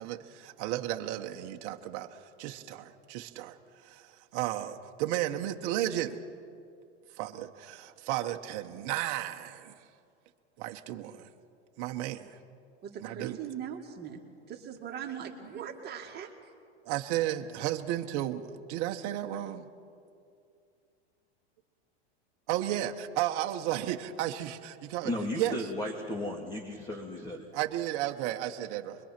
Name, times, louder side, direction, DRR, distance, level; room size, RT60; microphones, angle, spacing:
voice 1, 0.0-3.6 3.8-6.2 7.2-9.7 10.6-11.3 11.8-12.4 13.0-13.4 16.8-19.7 22.5-25.1 25.4-25.6 27.5-29.0, right 13 dB, 50° right, 4 dB, 1.1 m, -33 dB
voice 2, 12.8-14.2 14.5-16.3, right 8 dB, 30° right, 1 dB, 2.1 m, -40 dB
voice 3, 25.0-27.5, left 1 dB, 10° left, 1 dB, 2.0 m, -35 dB
24.5 x 22.0 x 5.9 m, 2.4 s
supercardioid pair, 130°, 34 cm